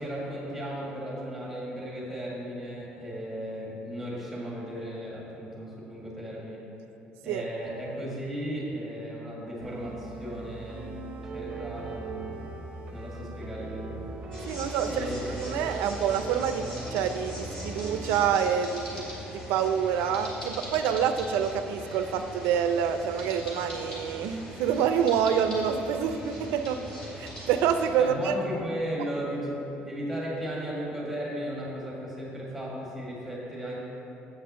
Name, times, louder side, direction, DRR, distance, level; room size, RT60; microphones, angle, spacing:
voice 1, 0.0-6.6 7.2-11.0 11.3-12.4 12.9-14.0 14.9-15.3 28.0-33.8, equal, ahead, -5 dB, 1.6 m, -35 dB
sound 1, 9.6-18.4, right 2 dB, 25° right, 0.9 m, -39 dB
sound 2, 14.3-27.9, equal, 20° left, 2.0 m, -41 dB
voice 2, 14.5-15.1 15.4-16.6 16.9-26.8 27.2-28.3, right 8 dB, 90° right, 8 dB, 0.5 m, -27 dB
8.0 x 5.7 x 6.8 m, 3.0 s
cardioid pair, 180°, 4 cm